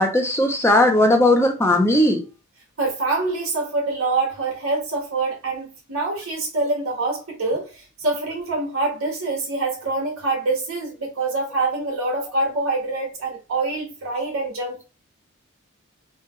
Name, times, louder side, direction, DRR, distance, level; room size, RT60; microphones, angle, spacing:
voice 1, 0.0-2.2, left 1 dB, 10° left, 0.6 m, -17 dB
voice 2, 2.8-14.8, right 3 dB, 75° right, 1.5 m, -25 dB
3.3 x 2.2 x 3.1 m
head